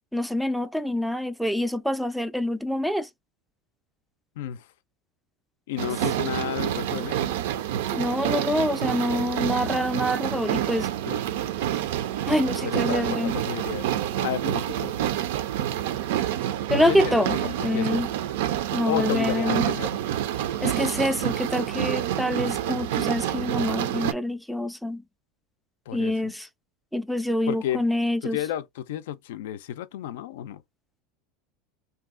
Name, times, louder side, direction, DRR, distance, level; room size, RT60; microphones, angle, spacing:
voice 1, 0.1-3.1 7.9-10.9 12.3-13.3 16.7-17.4 17.6-18.1 18.7-19.7 20.6-25.0 25.9-26.5 26.9-28.4, left 1 dB, ahead, 0.3 m, -26 dB
voice 2, 5.7-7.4 11.0-11.2 12.6-13.9 14.2-15.0 16.7-18.0 18.9-20.0 25.9-26.3 27.5-27.8 28.2-30.6, left 11 dB, 85° left, 0.4 m, -32 dB
sound 1, 5.8-24.1, right 11 dB, 80° right, 0.4 m, -28 dB
2.7 x 2.3 x 3.6 m
supercardioid pair, 145°, 0 cm